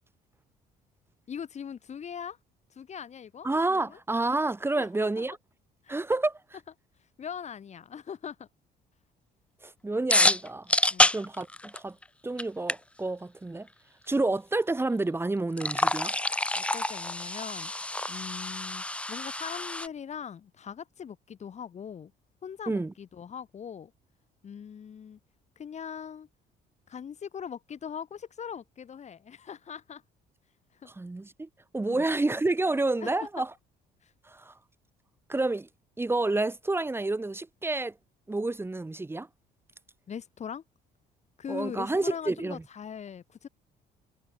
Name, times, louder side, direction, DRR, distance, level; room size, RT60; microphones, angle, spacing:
voice 1, 1.3-2.4 2.7-3.5 3.8-4.0 4.8-5.2 5.8-6.2 7.2-8.5 10.9-11.1 16.6-17.7 18.1-22.1 22.4-23.9 24.4-25.2 25.6-26.3 26.9-30.0 30.7-30.9 31.9-32.0 33.0-33.1 34.0-34.1 40.1-40.6 41.4-43.5, left 7 dB, 40° left, 4.0 m, -41 dB
voice 2, 3.4-5.4 5.9-6.3 9.6-10.7 11.1-12.0 12.2-13.7 14.1-16.1 22.7-22.9 30.9-31.5 31.7-33.5 34.3-34.5 35.3-35.7 36.0-37.9 38.3-39.3 41.5-42.6, right 2 dB, 15° right, 2.6 m, -29 dB
sound 1, 10.1-12.0 12.4-12.5 12.7-12.8 15.5-19.9, left 2 dB, 5° left, 0.6 m, -27 dB
cardioid pair, 110°, 17 cm